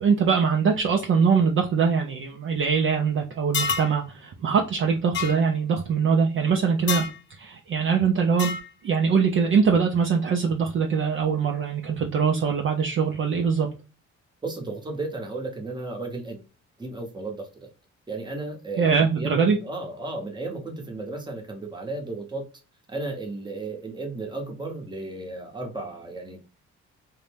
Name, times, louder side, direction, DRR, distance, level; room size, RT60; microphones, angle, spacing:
voice 1, 0.0-8.5 8.8-13.7 18.8-19.6, right 6 dB, 45° right, 0.5 m, -22 dB
sound 1, 3.5-3.9 5.1-5.3 6.9-7.2 8.4-8.7, left 6 dB, 40° left, 0.4 m, -27 dB
voice 2, 14.4-16.5 16.8-17.7 18.1-22.5 22.9-26.4, right 2 dB, 15° right, 0.8 m, -34 dB
2.6 x 2.1 x 3.2 m
cardioid pair, 90°, 30 cm